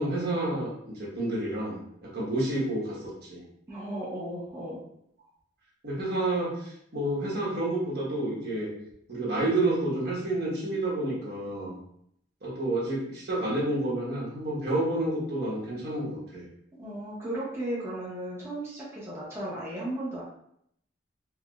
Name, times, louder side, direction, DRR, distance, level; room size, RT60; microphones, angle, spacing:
voice 1, 0.0-1.8 2.0-3.0 3.3-3.4 5.8-8.7 9.1-11.7 12.4-16.4, right 1 dB, 65° right, -5 dB, 1.2 m, -29 dB
voice 2, 3.7-4.8 16.8-20.2, right 1 dB, 15° right, -8 dB, 0.7 m, -35 dB
4.7 x 2.0 x 2.3 m, 0.72 s
head